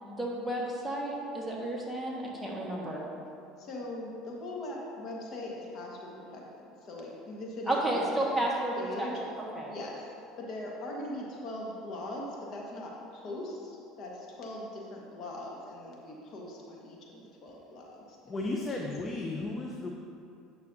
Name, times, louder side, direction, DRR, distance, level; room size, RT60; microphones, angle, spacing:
voice 1, 0.0-3.1 7.7-9.1 9.4-9.7, right 1 dB, ahead, -5 dB, 1.5 m, -32 dB
voice 2, 3.6-8.4 8.7-9.2 9.7-18.2, left 1 dB, 50° left, -2 dB, 1.5 m, -41 dB
voice 3, 18.3-19.9, left 2 dB, 25° left, 0 dB, 0.7 m, -34 dB
9.4 x 6.3 x 2.7 m, 2.6 s
supercardioid pair, 100°, 0 cm